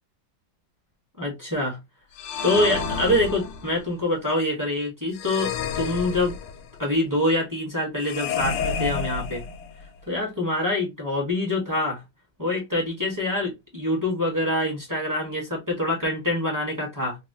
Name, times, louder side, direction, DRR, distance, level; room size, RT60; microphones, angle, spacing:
voice 1, 1.2-1.8 2.4-6.4 6.8-9.4 10.1-12.0 12.4-17.2, left 1 dB, 15° right, 0.8 m, -25 dB
sound 1, 2.2-3.9 5.1-6.8 8.0-9.9, left 6 dB, 75° left, 1.2 m, -30 dB
4.0 x 2.1 x 2.6 m
omnidirectional pair, 2.1 m